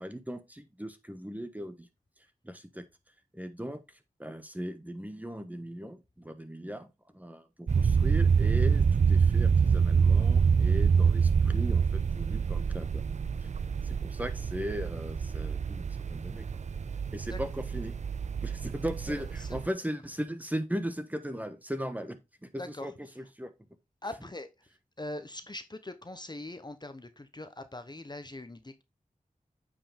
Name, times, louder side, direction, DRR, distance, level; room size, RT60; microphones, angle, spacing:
voice 1, 0.0-1.9 2.4-2.8 3.3-3.8 4.2-6.9 7.1-13.0 13.4-13.5 13.8-16.5 17.1-18.0 18.4-23.5, equal, 10° right, 1.2 m, -38 dB
sound 1, 7.7-19.7, right 6 dB, 55° right, 0.4 m, -26 dB
voice 2, 19.1-19.5 22.6-22.9 24.0-24.5 25.0-28.8, left 2 dB, 30° left, 0.9 m, -42 dB
8.6 x 5.1 x 3.6 m
cardioid pair, 45°, 14 cm